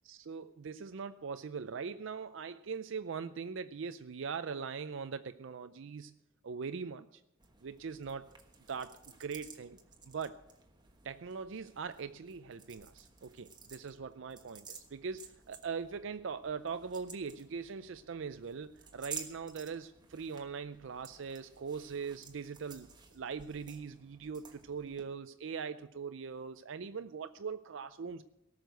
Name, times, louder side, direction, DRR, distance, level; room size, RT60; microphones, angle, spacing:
voice 1, 0.0-6.1 6.4-7.2 7.6-8.3 8.7-9.8 10.1-10.4 11.0-28.2, right 5 dB, 65° right, 10 dB, 0.5 m, -41 dB
sound 1, 7.4-25.0, right 5 dB, 20° right, 1.3 m, -53 dB
18.0 x 6.5 x 8.0 m, 0.84 s
head